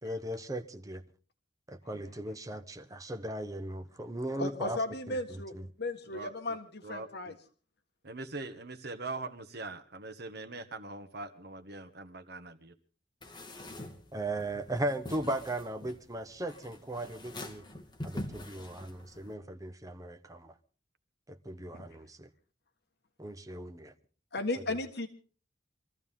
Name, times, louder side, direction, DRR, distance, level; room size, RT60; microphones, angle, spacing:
voice 1, 0.0-1.0 1.7-4.8 5.1-5.7 14.1-17.6 18.0-20.5 21.3-22.3 23.2-23.9, right 1 dB, 20° right, 1.0 m, -37 dB
voice 2, 4.4-7.3 21.7-21.8 24.3-25.1, left 2 dB, 60° left, 1.6 m, -36 dB
voice 3, 6.1-7.3 8.0-12.7, right 3 dB, 60° right, 1.5 m, -42 dB
sound 1, 13.2-19.3, left 1 dB, 25° left, 1.9 m, -45 dB
25.0 x 14.5 x 3.7 m
head